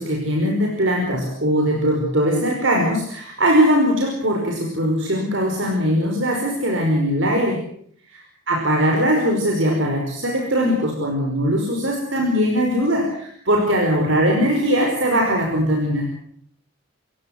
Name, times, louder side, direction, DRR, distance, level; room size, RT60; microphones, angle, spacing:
voice 1, 0.0-7.6 8.1-16.0, equal, 60° right, 1 dB, 5.2 m, -20 dB
27.5 x 16.0 x 8.0 m, 0.64 s
head